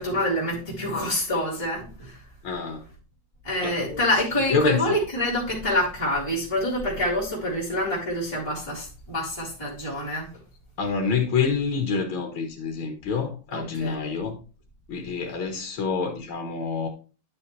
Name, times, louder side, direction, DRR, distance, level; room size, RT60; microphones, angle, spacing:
voice 1, 0.0-2.2 3.4-10.4 13.5-14.0, left 1 dB, 15° left, 3.7 m, -27 dB
voice 2, 2.4-2.9 3.6-4.0 4.5-5.0 10.8-14.4 14.9-16.9, left 5 dB, 90° left, 2.1 m, -27 dB
11.0 x 6.3 x 3.2 m
omnidirectional pair, 2.2 m